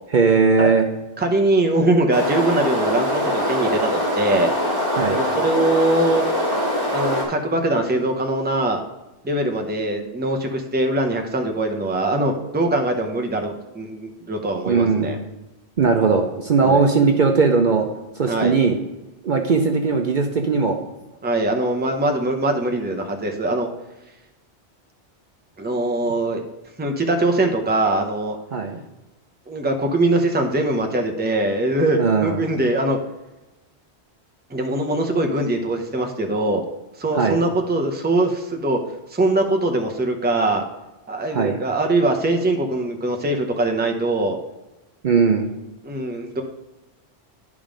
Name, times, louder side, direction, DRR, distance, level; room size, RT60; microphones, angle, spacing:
voice 1, 0.1-0.9 5.0-5.2 14.7-15.2 15.8-17.9 18.2-18.8 19.2-20.8 28.5-28.8 32.0-32.4 37.1-37.4 41.3-41.6 45.0-45.5, right 4 dB, 50° right, 3 dB, 0.7 m, -18 dB
voice 2, 1.2-4.5 5.1-6.3 6.9-8.8 9.2-15.2 16.6-16.8 18.3-18.6 21.2-23.7 25.6-26.4 26.8-28.4 29.5-33.0 34.5-36.6 37.0-38.8 39.1-40.6 41.1-44.4 45.8-46.4, right 2 dB, 10° right, 4 dB, 0.6 m, -22 dB
sound 1, 2.1-7.2, equal, 20° left, 2.8 m, -23 dB
10.5 x 3.6 x 5.0 m, 1.0 s
omnidirectional pair, 1.1 m